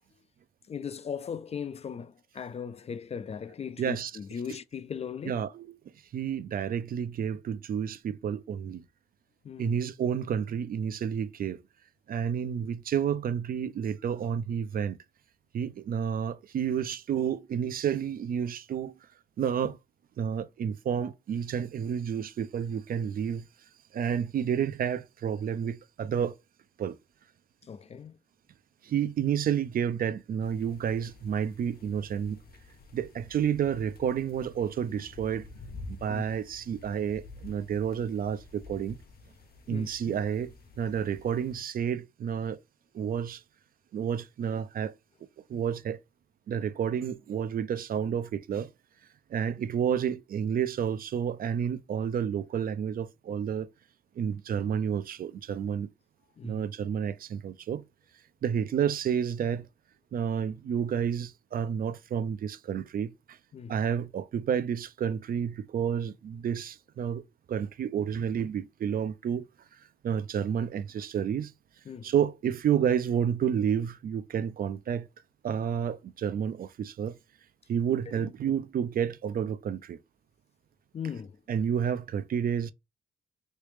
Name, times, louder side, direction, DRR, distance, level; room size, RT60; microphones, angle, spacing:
voice 1, 0.7-5.4 9.4-9.8 27.6-28.2 36.1-36.2 39.7-40.2 56.4-56.7 63.5-63.7 71.9-72.1 78.1-78.3 80.9-81.4, left 7 dB, 30° left, 0.3 m, -38 dB
voice 2, 3.8-4.1 5.2-5.8 6.1-8.8 9.6-11.6 12.1-15.0 15.5-18.9 19.4-19.8 20.2-23.4 23.9-26.3 26.8-27.0 28.8-32.4 32.9-35.5 35.9-39.0 39.7-42.6 42.9-43.4 43.9-44.9 45.5-46.0 46.5-48.7 49.3-53.7 54.2-55.9 56.4-57.8 58.4-59.7 60.1-63.4 63.7-67.2 67.5-69.5 70.0-71.5 72.0-75.1 75.4-77.2 77.7-80.0 81.0-81.1 81.5-82.7, right 8 dB, 45° right, 0.4 m, -30 dB
sound 1, 30.4-41.6, left 2 dB, 50° left, 0.9 m, -49 dB
3.2 x 3.0 x 3.3 m
cardioid pair, 90°, 20 cm